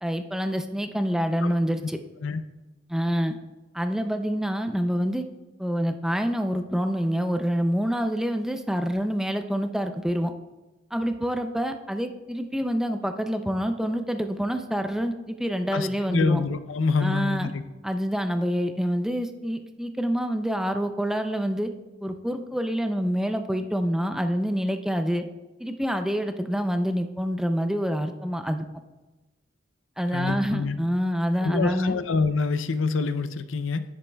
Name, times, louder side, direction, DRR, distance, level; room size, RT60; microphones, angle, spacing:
voice 1, 0.0-2.0 2.9-3.3 3.7-5.2 5.6-10.3 10.9-16.4 17.0-17.5 17.8-21.7 22.0-25.2 25.6-28.7 30.0-31.9, equal, 5° right, 7 dB, 0.4 m, -27 dB
voice 2, 15.7-17.6 30.1-30.8 31.4-33.8, left 4 dB, 85° left, 12 dB, 0.5 m, -26 dB
10.0 x 10.0 x 2.3 m, 1.1 s
head